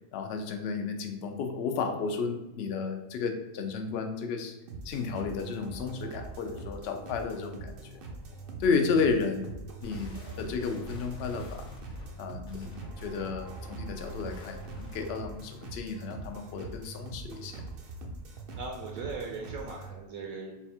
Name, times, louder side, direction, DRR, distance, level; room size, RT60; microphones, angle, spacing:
voice 1, 0.1-4.5 4.8-7.7 8.6-9.5 9.8-11.7 12.2-17.6, left 5 dB, 65° left, 5 dB, 0.6 m, -32 dB
sound 1, 4.7-19.9, right 3 dB, 55° right, 0.6 m, -43 dB
sound 2, 9.8-15.3, equal, 45° left, 0.9 m, -46 dB
voice 2, 18.5-20.5, right 4 dB, 75° right, 0 dB, 1.0 m, -38 dB
4.1 x 2.4 x 4.2 m, 0.95 s
omnidirectional pair, 1.5 m